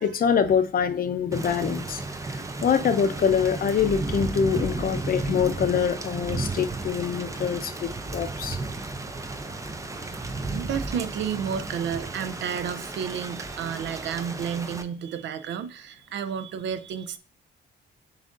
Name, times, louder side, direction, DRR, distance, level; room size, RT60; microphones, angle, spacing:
voice 1, 0.0-8.6, left 7 dB, 45° left, 0.6 m, -25 dB
Thunder / Rain, 1.3-14.8, right 3 dB, 15° right, 0.4 m, -33 dB
voice 2, 10.5-17.2, right 7 dB, 65° right, 0.5 m, -31 dB
7.2 x 2.5 x 2.5 m
cardioid pair, 90°, 20 cm